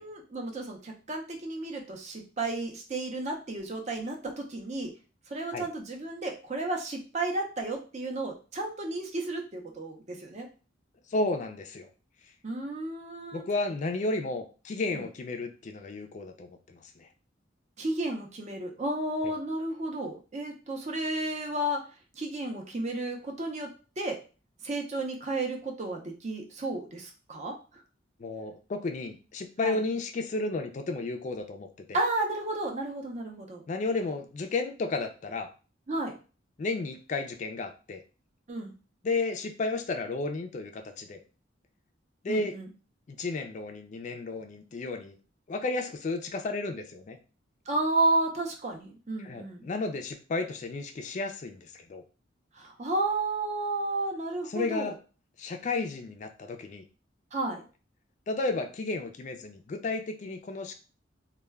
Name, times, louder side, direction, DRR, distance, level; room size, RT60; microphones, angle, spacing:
voice 1, 0.0-4.9 5.3-10.5 12.4-13.5 14.9-15.0 17.8-21.8 22.2-23.7 24.0-24.2 24.6-27.5 29.6-29.8 31.9-33.6 35.9-36.1 38.5-38.8 42.3-42.7 47.7-49.7 52.6-54.9 57.3-57.6, right 2 dB, 35° right, 2 dB, 0.5 m, -32 dB
voice 2, 11.1-11.9 13.3-17.1 19.2-19.3 28.2-32.0 33.7-35.5 36.6-38.0 39.0-41.2 42.2-42.6 43.1-45.2 45.5-47.2 49.2-52.0 54.5-55.0 55.4-56.8 58.3-60.8, left 3 dB, 40° left, 6 dB, 0.3 m, -33 dB
2.2 x 2.1 x 3.3 m, 0.34 s
head